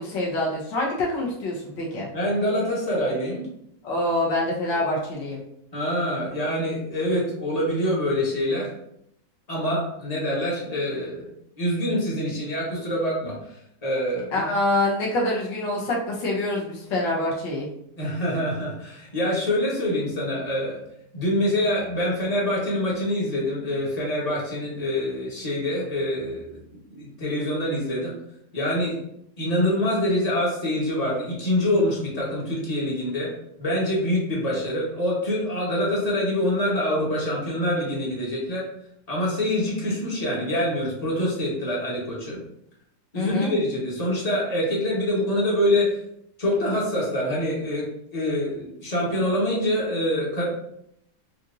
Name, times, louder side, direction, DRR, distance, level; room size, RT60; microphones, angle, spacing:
voice 1, 0.0-2.1 3.8-5.4 14.3-17.7 43.1-43.5, left 1 dB, 80° left, -3 dB, 1.7 m, -26 dB
voice 2, 2.0-3.4 4.7-4.8 5.7-8.7 9.5-13.6 13.8-14.4 18.0-20.8 21.1-26.6 26.9-28.1 28.5-29.0 29.4-33.3 33.6-38.6 39.1-42.4 43.1-46.0 46.4-47.8 48.1-50.5, left 1 dB, 25° left, -5 dB, 1.0 m, -25 dB
5.1 x 2.7 x 2.5 m, 0.75 s
omnidirectional pair, 1.9 m